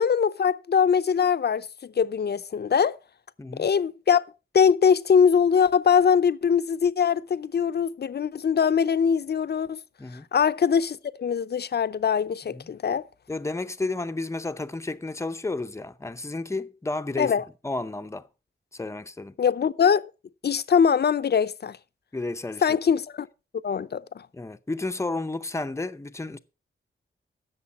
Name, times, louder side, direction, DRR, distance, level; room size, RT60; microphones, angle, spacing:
voice 1, 0.0-3.0 3.6-4.2 4.5-9.8 10.3-13.0 17.2-17.4 19.4-20.0 20.4-21.8 22.6-23.3 23.6-24.3, left 7 dB, 55° left, 0.6 m, -22 dB
voice 2, 13.3-17.3 17.6-18.3 18.7-19.3 22.1-22.7 24.3-26.4, left 2 dB, 15° left, 0.6 m, -32 dB
17.0 x 6.8 x 4.1 m
wide cardioid pair, 130°, 21 cm